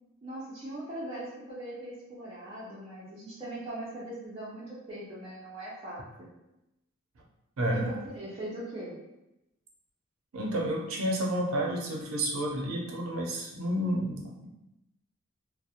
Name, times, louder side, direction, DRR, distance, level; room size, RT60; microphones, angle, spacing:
voice 1, 0.2-6.0 7.7-9.0, right 1 dB, 30° right, -10 dB, 0.5 m, -40 dB
voice 2, 7.6-7.9 10.3-14.5, right 1 dB, 75° right, -1 dB, 0.5 m, -30 dB
2.4 x 2.0 x 2.7 m, 0.93 s
head